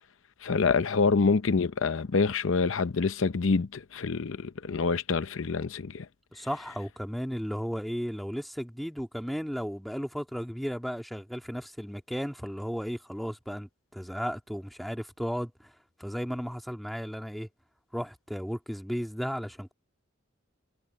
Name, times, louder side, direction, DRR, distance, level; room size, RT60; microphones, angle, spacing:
voice 1, 0.4-6.1, left 4 dB, 70° left, 0.6 m, -26 dB
voice 2, 6.3-15.7 16.0-17.5 17.9-19.7, equal, ahead, 2.1 m, -34 dB
head